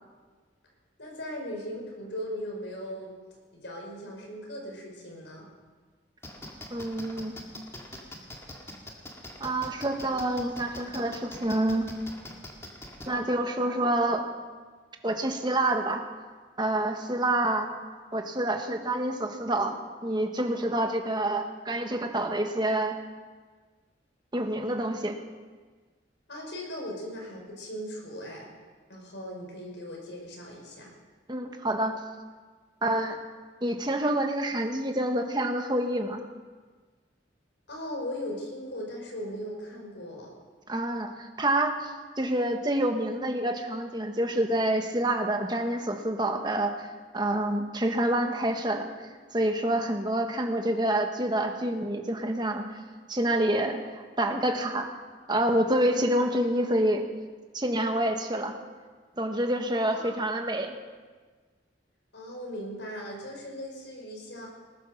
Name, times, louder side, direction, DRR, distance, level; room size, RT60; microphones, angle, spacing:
voice 1, 1.0-3.1 3.5-5.5 26.3-28.5 28.9-30.9 37.7-40.3 59.9-60.4 62.1-64.5, equal, 75° left, 0 dB, 5.0 m, -38 dB
sound 1, 6.2-13.1, left 1 dB, 15° left, 1.9 m, -42 dB
voice 2, 6.7-7.3 9.4-11.9 13.1-14.2 15.0-16.0 16.6-17.7 18.1-19.8 20.0-23.0 24.3-25.2 31.3-31.9 32.8-33.2 33.6-36.2 40.7-41.9 42.2-52.8 53.1-54.9 55.3-57.0 57.5-58.5 59.2-60.7, right 1 dB, 25° right, 4 dB, 1.4 m, -27 dB
20.0 x 10.0 x 6.5 m, 1.4 s
head